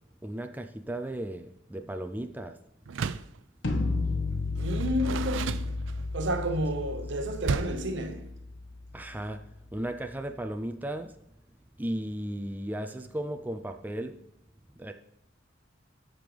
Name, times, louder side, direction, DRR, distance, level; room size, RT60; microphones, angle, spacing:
voice 1, 0.2-2.6 8.9-11.2 11.8-14.3 14.7-14.9, right 1 dB, 10° right, 0.4 m, -35 dB
Door, 2.9-3.4 4.6-6.2 7.4-7.9, right 5 dB, 90° right, 0.4 m, -33 dB
sound 1, 3.6-9.6, left 3 dB, 85° left, 1.1 m, -33 dB
voice 2, 4.5-5.8 6.1-8.4, equal, 70° right, 0.8 m, -31 dB
13.5 x 5.3 x 3.3 m
head